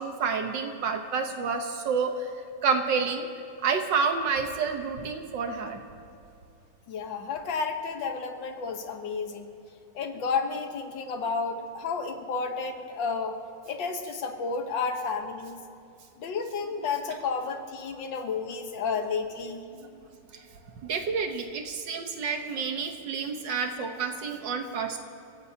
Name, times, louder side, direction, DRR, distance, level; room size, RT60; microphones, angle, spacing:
voice 1, 0.0-2.3 2.6-3.3 3.6-5.8 19.7-20.0 20.3-20.5 20.8-25.0, right 5 dB, 80° right, 5 dB, 1.8 m, -29 dB
voice 2, 6.9-9.5 10.0-13.4 13.7-15.6 16.2-19.6, left 5 dB, 90° left, 5 dB, 1.9 m, -31 dB
29.5 x 16.5 x 2.8 m, 2.6 s
omnidirectional pair, 2.0 m